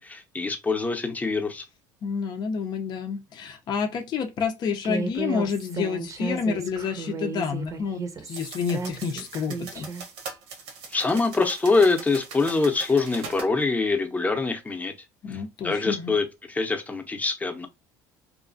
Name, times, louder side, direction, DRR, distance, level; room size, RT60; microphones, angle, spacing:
voice 1, 0.0-1.6 10.9-14.9 15.3-17.7, left 3 dB, 15° left, 0.7 m, -24 dB
voice 2, 2.0-9.9 15.2-16.1, left 6 dB, 50° left, 0.5 m, -29 dB
Human voice, 4.8-10.0, right 4 dB, 35° right, 0.7 m, -34 dB
sound 1, 8.3-13.5, right 5 dB, 70° right, 1.0 m, -41 dB
3.0 x 2.3 x 2.5 m
supercardioid pair, 80°, 9 cm